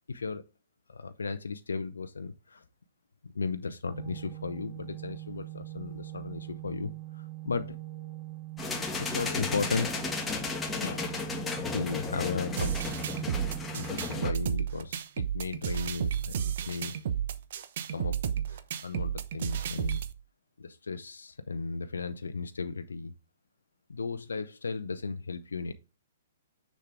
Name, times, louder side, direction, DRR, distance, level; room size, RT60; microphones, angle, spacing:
voice 1, 0.1-0.5 0.9-2.6 3.3-7.8 9.0-9.9 10.8-11.1 11.7-12.8 13.7-17.0 17.9-18.2 18.5-20.0 20.6-23.1 23.9-25.7, left 4 dB, 75° left, 0.7 m, -35 dB
Organ, 3.9-14.8, right 16 dB, 25° right, 1.8 m, -42 dB
sound 1, 8.6-14.3, left 4 dB, 15° left, 1.6 m, -34 dB
sound 2, 12.6-20.1, right 9 dB, 55° right, 0.8 m, -32 dB
6.6 x 6.4 x 3.5 m
figure-of-eight pair, 120°, 0 cm